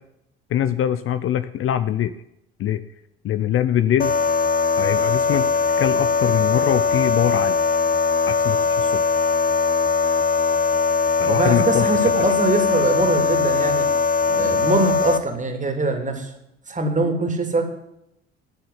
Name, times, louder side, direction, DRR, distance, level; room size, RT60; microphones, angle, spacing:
voice 1, 0.5-2.1 2.6-2.8 3.2-4.2 4.8-5.5 5.8-7.6 8.3-9.0 11.2-11.9, left 10 dB, 40° left, 13 dB, 0.7 m, -23 dB
sound 1, 4.0-15.2, left 5 dB, 25° left, 1.2 m, -20 dB
voice 2, 11.2-13.9 14.3-16.3 16.7-17.6, right 2 dB, 20° right, 5 dB, 2.9 m, -22 dB
11.5 x 6.9 x 9.4 m, 0.81 s
figure-of-eight pair, 60°, 33 cm